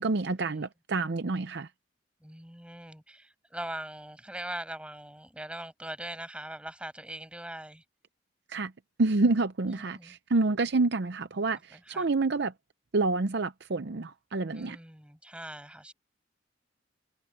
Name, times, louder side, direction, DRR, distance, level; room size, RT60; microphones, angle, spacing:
voice 1, 0.0-1.7 8.5-8.7 9.0-12.5 12.9-14.8, right 3 dB, 60° right, 0.7 m, -28 dB
voice 2, 2.2-7.8 9.7-10.2 11.7-12.1 14.5-15.9, right 1 dB, 5° right, 6.5 m, -41 dB
head